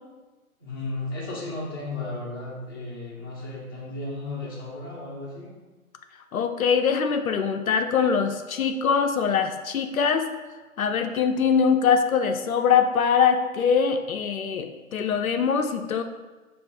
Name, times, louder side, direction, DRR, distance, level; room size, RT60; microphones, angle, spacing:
voice 1, 0.6-5.5, left 2 dB, 15° left, -8 dB, 0.5 m, -34 dB
voice 2, 6.3-10.3 10.8-16.0, left 6 dB, 70° left, 6 dB, 0.5 m, -23 dB
5.5 x 2.5 x 3.5 m, 1.2 s
figure-of-eight pair, 145°, 43 cm